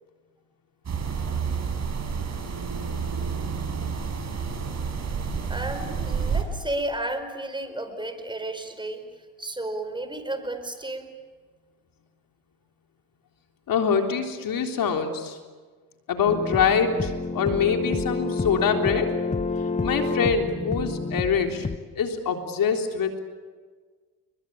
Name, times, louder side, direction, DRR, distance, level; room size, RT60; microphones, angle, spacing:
sound 1, 0.8-6.4, right 6 dB, 40° right, 6.2 m, -29 dB
voice 1, 5.5-9.0 9.4-11.1, right 1 dB, 10° right, 9 dB, 5.0 m, -32 dB
voice 2, 13.7-15.4 16.1-19.1 19.8-21.7 22.0-23.2, left 6 dB, 55° left, 4 dB, 3.7 m, -24 dB
sound 2, 16.3-21.8, left 3 dB, 15° left, 1.5 m, -28 dB
30.0 x 22.5 x 8.7 m, 1.5 s
supercardioid pair, 75°, 40 cm